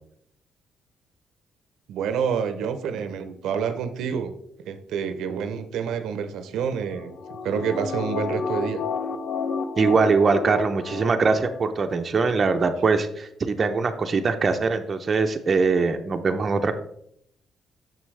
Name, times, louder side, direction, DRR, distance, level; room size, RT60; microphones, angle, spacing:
voice 1, 1.9-4.3 4.6-7.2 7.4-8.8, right 7 dB, 85° right, 9 dB, 0.6 m, -28 dB
sound 1, 6.8-11.6 11.9-12.0, left 5 dB, 60° left, 0.5 m, -31 dB
voice 2, 9.8-16.7, right 4 dB, 40° right, 6 dB, 0.6 m, -22 dB
6.6 x 6.2 x 3.2 m, 0.71 s
cardioid pair, 90°, 0 cm